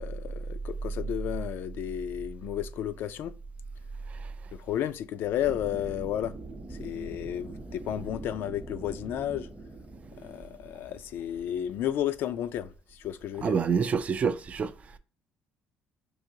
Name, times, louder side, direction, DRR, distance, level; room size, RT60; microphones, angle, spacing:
voice 1, 0.0-3.3 4.6-6.3 6.7-9.5 10.2-13.5, left 11 dB, 70° left, 0.4 m, -32 dB
sound 1, 5.4-11.4, right 2 dB, 20° right, 0.8 m, -43 dB
voice 2, 13.4-14.7, right 6 dB, 35° right, 0.4 m, -26 dB
4.7 x 2.8 x 2.7 m
cardioid pair, 95°, 4 cm